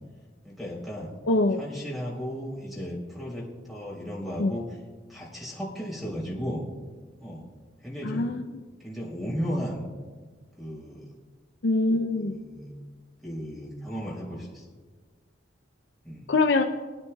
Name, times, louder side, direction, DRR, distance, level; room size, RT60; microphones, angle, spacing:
voice 1, 0.4-1.1 1.6-4.7 5.1-6.6 7.2-7.4 7.8-8.3 8.8-9.9 10.6-11.1 12.2-12.7 13.2-14.6 16.0-16.3, equal, ahead, -5 dB, 3.5 m, -35 dB
voice 2, 1.3-1.6 4.4-4.6 8.0-8.4 11.6-12.3 16.3-16.6, left 2 dB, 65° left, 5 dB, 0.5 m, -23 dB
21.5 x 9.8 x 2.3 m, 1.4 s
head